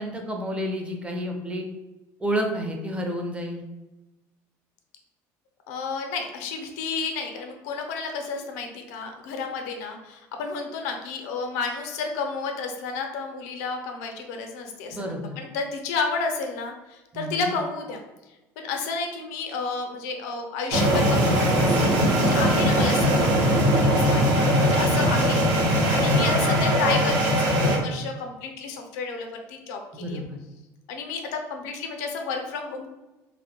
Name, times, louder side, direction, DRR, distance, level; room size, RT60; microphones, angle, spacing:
voice 1, 0.0-1.7 2.2-3.6 14.9-15.4 17.1-17.5 30.0-30.4, equal, 15° right, 2 dB, 0.4 m, -30 dB
voice 2, 5.7-18.0 18.6-30.2 30.9-32.9, left 4 dB, 90° left, 3 dB, 0.4 m, -31 dB
sound 1, 20.7-27.8, equal, 65° right, 0.6 m, -20 dB
2.2 x 2.0 x 2.8 m, 1.1 s
supercardioid pair, 110°, 8 cm